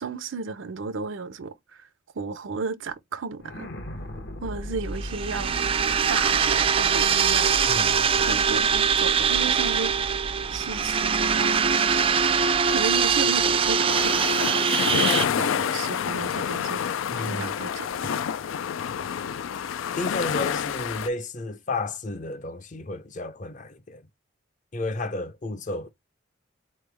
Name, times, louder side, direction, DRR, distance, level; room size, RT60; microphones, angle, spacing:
voice 1, 0.0-1.9 2.2-3.7 4.4-5.5 6.1-7.7 8.2-9.9 10.5-11.6 12.7-18.2, right 4 dB, 75° right, 0.6 m, -34 dB
sound 1, 3.4-14.5, equal, 60° left, 0.9 m, -39 dB
sound 2, 5.0-15.2, right 6 dB, 30° right, 0.4 m, -22 dB
voice 2, 7.7-8.3 17.1-17.6 20.0-24.1 24.7-25.9, left 2 dB, 40° left, 0.6 m, -32 dB
sound 3, 13.9-21.1, left 8 dB, 85° left, 0.4 m, -28 dB
4.2 x 3.2 x 3.4 m
head